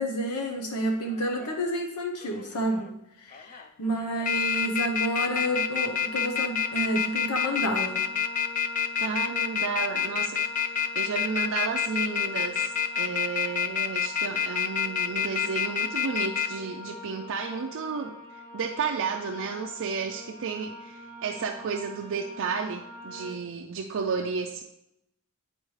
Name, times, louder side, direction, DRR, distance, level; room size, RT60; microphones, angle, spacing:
voice 1, 0.0-8.1, right 1 dB, 85° left, 3 dB, 0.9 m, -30 dB
sound 1, 1.2-1.5 2.2-2.9 3.3-3.6 4.0-16.5, left 8 dB, 35° left, 0.4 m, -27 dB
sound 2, 3.8-23.3, equal, 5° left, 1.1 m, -44 dB
voice 2, 9.0-24.6, right 5 dB, 60° right, 2 dB, 0.4 m, -32 dB
10.0 x 4.3 x 3.2 m, 0.86 s
head